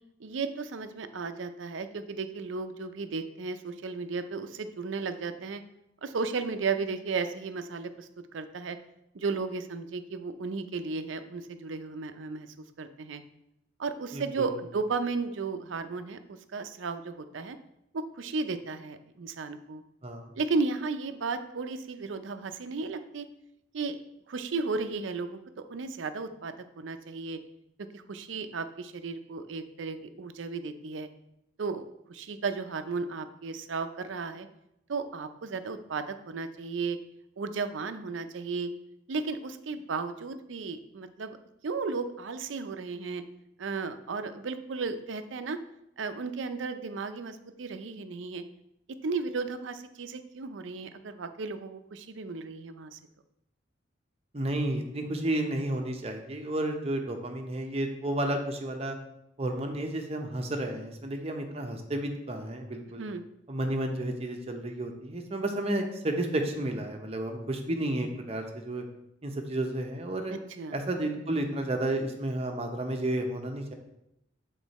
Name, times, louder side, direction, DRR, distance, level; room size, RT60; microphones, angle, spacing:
voice 1, 0.2-5.6 6.0-8.8 9.1-13.2 13.8-17.6 17.9-19.8 20.4-23.3 23.7-24.0 24.3-27.4 27.8-31.1 31.6-34.5 34.9-37.0 37.4-38.7 39.1-41.4 41.6-43.2 43.6-45.6 46.0-48.4 49.0-53.0 63.0-63.2 70.3-70.8, right 4 dB, 80° right, 9 dB, 0.5 m, -34 dB
voice 2, 54.3-59.0 59.4-63.0 63.5-68.8 69.2-70.3 70.7-73.7, right 1 dB, 30° right, 4 dB, 0.7 m, -31 dB
8.1 x 3.9 x 4.1 m, 0.82 s
head